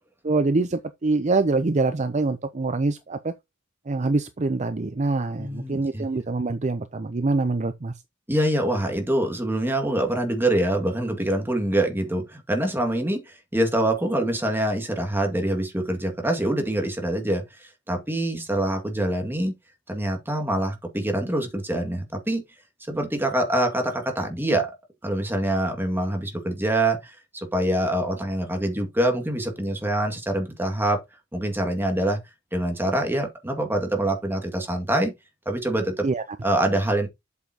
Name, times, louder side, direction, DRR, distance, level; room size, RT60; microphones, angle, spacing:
voice 1, 0.2-3.3 3.9-7.9 36.0-36.2, right 3 dB, 35° right, 0.6 m, -24 dB
voice 2, 5.4-6.1 8.3-19.6 19.9-22.4 22.9-24.7 25.0-31.0 31.3-32.2 32.5-35.1 35.5-36.0 36.4-37.1, right 1 dB, 10° right, 2.1 m, -25 dB
8.2 x 7.3 x 2.9 m
head